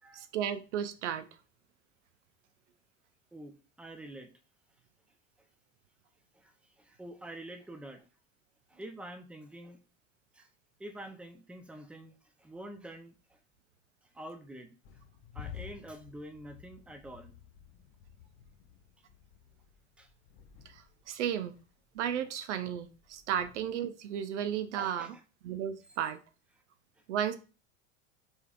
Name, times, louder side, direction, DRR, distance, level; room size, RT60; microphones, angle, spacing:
voice 1, 0.1-1.3 20.7-21.6 21.9-25.1 25.4-26.2 27.1-27.4, right 9 dB, 75° right, 0.6 m, -34 dB
voice 2, 3.3-4.3 6.3-8.1 8.7-9.8 10.3-10.5 10.8-13.4 14.0-14.7 15.3-17.4 20.0-20.1 24.8-25.2, right 1 dB, 5° right, 0.6 m, -47 dB
sound 1, 14.8-23.8, left 8 dB, 50° left, 0.7 m, -52 dB
5.2 x 3.5 x 2.4 m
hypercardioid pair, 80°, 35 cm